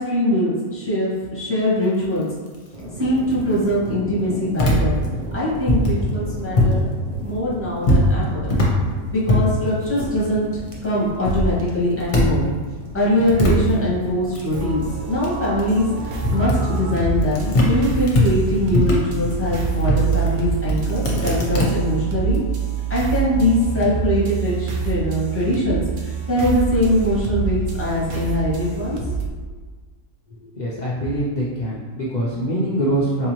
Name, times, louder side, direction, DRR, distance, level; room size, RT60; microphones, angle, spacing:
voice 1, 0.0-2.3 3.0-5.0 5.3-6.9 7.2-8.5 9.1-10.5 10.8-12.5 12.9-22.4 22.9-29.1, left 1 dB, 10° left, -7 dB, 0.8 m, -22 dB
sound 1, 2.7-16.5, equal, 50° right, 0.4 m, -37 dB
sound 2, 4.6-6.8 7.1-10.6 11.0-12.5 12.8-17.7 18.1-21.6, left 1 dB, 45° left, 0.7 m, -21 dB
sound 3, 14.5-29.3, right 6 dB, 80° right, 1.1 m, -26 dB
voice 2, 30.4-33.3, right 1 dB, 75° left, -7 dB, 0.4 m, -24 dB
3.9 x 2.7 x 2.9 m, 1.4 s
omnidirectional pair, 1.5 m